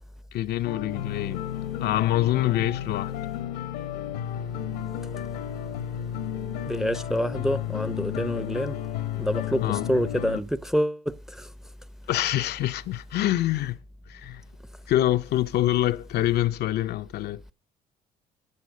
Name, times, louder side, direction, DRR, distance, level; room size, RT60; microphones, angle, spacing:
voice 1, 0.3-1.4 1.8-3.1 9.6-9.9 12.1-13.8 14.1-14.4 14.9-17.4, left 14 dB, 60° left, 0.5 m, -25 dB
sound 1, 0.6-10.4, left 11 dB, 85° left, 1.0 m, -32 dB
voice 2, 6.7-8.8 9.2-11.5, equal, ahead, 0.6 m, -27 dB
8.5 x 6.9 x 6.5 m
hypercardioid pair, 60°, 19 cm